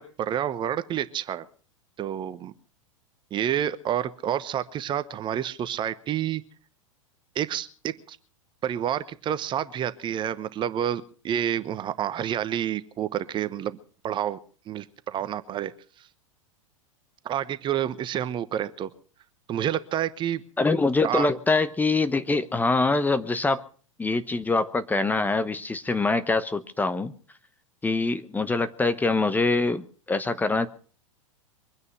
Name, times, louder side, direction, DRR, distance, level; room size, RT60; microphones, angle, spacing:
voice 1, 0.0-1.4 2.0-2.5 3.3-6.4 7.3-8.2 8.6-13.8 14.0-14.4 14.7-15.7 17.2-18.9 19.5-20.4 21.0-21.3, right 10 dB, 30° right, 14 dB, 1.0 m, -29 dB
voice 2, 20.6-23.6 24.0-27.1 27.8-30.7, left 3 dB, 10° left, 11 dB, 0.9 m, -24 dB
23.5 x 9.7 x 5.8 m, 0.43 s
figure-of-eight pair, 95°, 17 cm